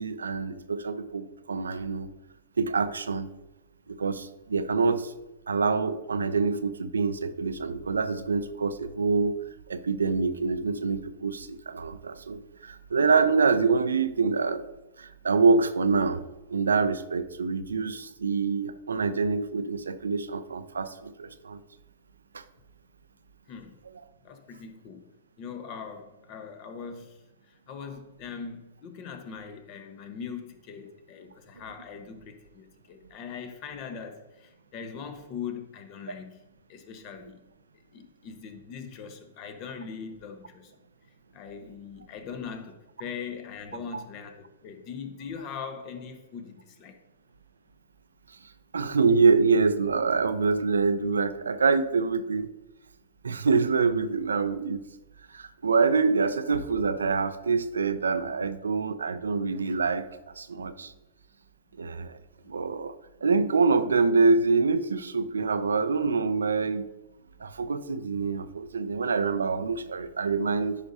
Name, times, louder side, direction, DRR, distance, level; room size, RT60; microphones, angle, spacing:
voice 1, 0.0-2.1 2.6-3.3 3.9-5.1 5.5-9.4 9.7-14.6 15.0-16.2 16.5-21.6 22.3-22.4 43.9-44.0 48.7-52.5 53.2-54.8 55.3-60.0 60.4-60.9 61.8-62.2 62.5-62.9 63.2-66.9 67.4-70.8, right 4 dB, 85° right, 0.5 m, -25 dB
voice 2, 24.2-25.1 25.4-36.4 36.7-37.4 37.9-40.7 41.3-47.0 62.4-62.5, left 6 dB, 40° left, 1.1 m, -41 dB
9.9 x 5.2 x 2.7 m
hypercardioid pair, 115°, 0 cm